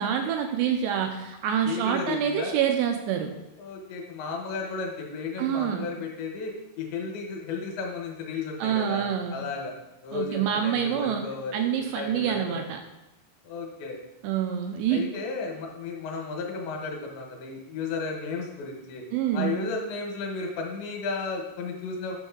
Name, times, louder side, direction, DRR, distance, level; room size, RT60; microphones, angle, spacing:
voice 1, 0.0-3.3 5.4-5.9 8.6-9.4 10.1-11.3 11.5-12.8 14.2-15.1 19.1-19.6, right 8 dB, 85° right, 5 dB, 2.4 m, -26 dB
voice 2, 1.7-2.6 3.6-9.0 9.3-9.7 10.0-12.6 13.4-14.0 14.9-19.0 19.3-22.2, left 4 dB, 75° left, 1 dB, 3.3 m, -34 dB
9.0 x 6.3 x 3.7 m, 0.97 s
omnidirectional pair, 5.4 m